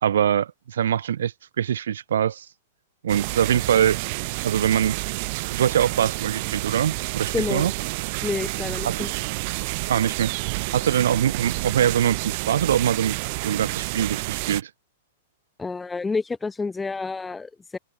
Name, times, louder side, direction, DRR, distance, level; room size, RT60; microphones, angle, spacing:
voice 1, 0.0-2.5 3.0-4.0 4.4-5.0 5.5-7.7 8.8-9.0 9.9-10.3 10.7-13.2 13.4-14.7, right 9 dB, 70° right, 0.8 m, -23 dB
sound 1, 3.1-14.6, right 27 dB, 50° right, 1.2 m, -29 dB
voice 2, 7.3-7.7 8.2-9.1 15.6-17.8, left 4 dB, 10° left, 6.0 m, -29 dB
hypercardioid pair, 110°, 0 cm